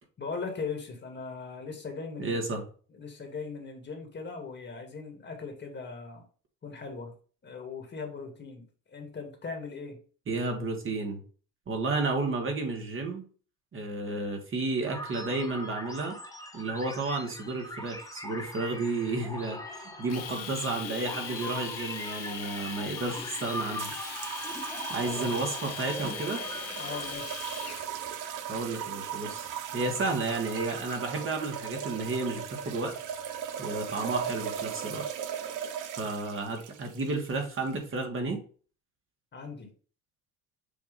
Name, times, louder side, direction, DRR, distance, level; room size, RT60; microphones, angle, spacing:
voice 1, 0.2-2.4 2.9-6.2 6.6-7.1 7.4-10.0 26.8-27.4 39.3-39.7, left 4 dB, 35° left, 4 dB, 1.7 m, -39 dB
voice 2, 2.2-2.6 10.3-11.2 11.7-13.2 13.7-16.2 16.5-23.9 24.9-26.4 28.5-33.0 33.6-35.0 36.0-38.4, right 3 dB, 40° right, 2 dB, 1.5 m, -32 dB
sound 1, 14.9-27.1, left 1 dB, 10° left, 1.4 m, -41 dB
Domestic sounds home sounds, 20.1-27.9, left 8 dB, 50° left, 0.9 m, -40 dB
sound 2, 23.8-38.0, right 8 dB, 65° right, 0.8 m, -38 dB
6.9 x 2.7 x 5.1 m, 0.41 s
cardioid pair, 120°, 33 cm